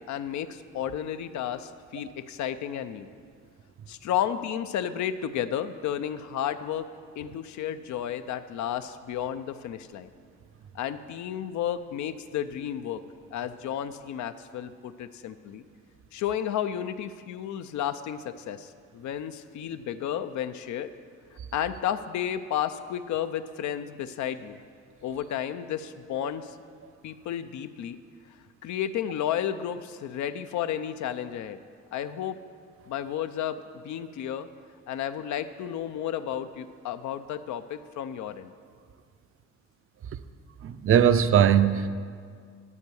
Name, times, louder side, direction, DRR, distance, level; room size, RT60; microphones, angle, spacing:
voice 1, 0.0-3.1 3.9-6.9 7.2-10.1 10.7-13.0 13.3-15.6 16.1-20.9 21.5-24.6 25.0-26.6 27.0-28.0 28.6-31.6 31.9-32.4 32.9-34.5 34.9-38.5, left 10 dB, 70° left, 11 dB, 0.5 m, -32 dB
voice 2, 40.6-41.9, right 9 dB, 45° right, 12 dB, 0.5 m, -20 dB
11.0 x 4.7 x 6.9 m, 2.1 s
cardioid pair, 90°, 30 cm